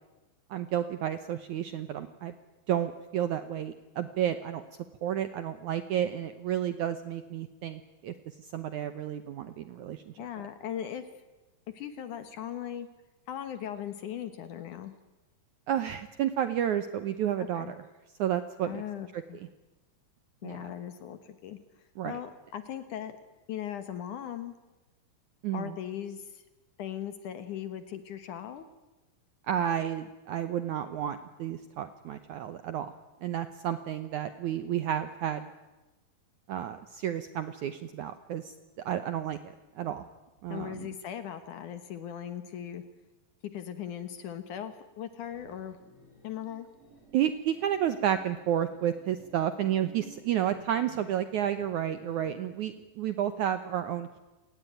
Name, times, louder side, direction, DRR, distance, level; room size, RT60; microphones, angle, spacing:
voice 1, 0.5-2.3 2.7-4.6 5.0-8.1 8.5-10.1 15.7-17.8 18.2-18.8 19.1-19.2 20.4-20.7 22.0-22.2 25.4-25.7 29.5-32.9 33.2-35.5 36.5-38.5 38.9-40.1 40.4-40.9 47.1-54.2, right 10 dB, 75° right, 11 dB, 1.8 m, -31 dB
voice 2, 10.2-11.1 11.7-12.9 13.3-14.9 17.4-17.7 18.6-19.4 20.4-21.6 22.0-23.2 23.5-24.5 25.5-26.4 26.8-28.7 40.5-42.8 43.4-45.8 46.2-46.7, left 10 dB, 65° left, 11 dB, 2.3 m, -38 dB
sound 1, 45.0-52.3, right 1 dB, 35° right, 4.5 m, -55 dB
29.0 x 19.0 x 9.3 m, 1.1 s
omnidirectional pair, 4.6 m